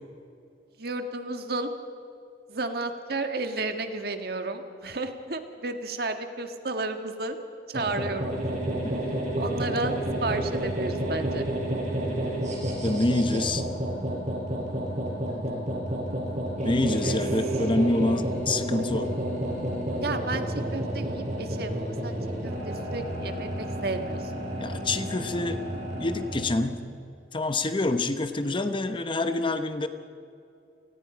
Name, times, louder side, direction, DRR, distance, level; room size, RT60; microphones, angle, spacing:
voice 1, 0.8-1.7 2.5-7.4 7.7-8.3 9.4-11.4 16.6-16.7 17.0-17.2 20.0-20.4 20.7-22.2 22.4-24.3, right 2 dB, 60° right, 7 dB, 1.6 m, -32 dB
sound 1, 7.7-26.6, right 1 dB, 40° right, 6.2 m, -30 dB
voice 2, 12.8-13.6 16.6-19.1 24.6-25.6 26.0-26.8 27.3-29.9, left 2 dB, 30° left, 9 dB, 0.9 m, -26 dB
29.0 x 19.5 x 5.1 m, 2.5 s
head